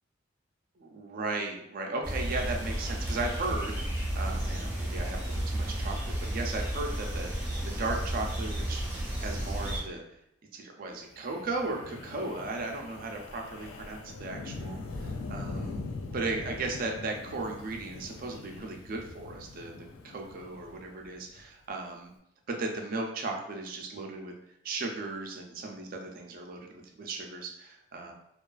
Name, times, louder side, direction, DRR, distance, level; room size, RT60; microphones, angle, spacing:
voice 1, 0.8-10.0 10.5-15.8 16.1-22.1 22.5-24.3 24.6-28.1, right 3 dB, 45° right, 2 dB, 0.4 m, -36 dB
sound 1, 2.0-9.8, right 1 dB, 10° right, 0.6 m, -32 dB
Wind, 11.1-21.4, left 3 dB, 85° left, 0.3 m, -42 dB
2.3 x 2.3 x 2.3 m, 0.80 s
head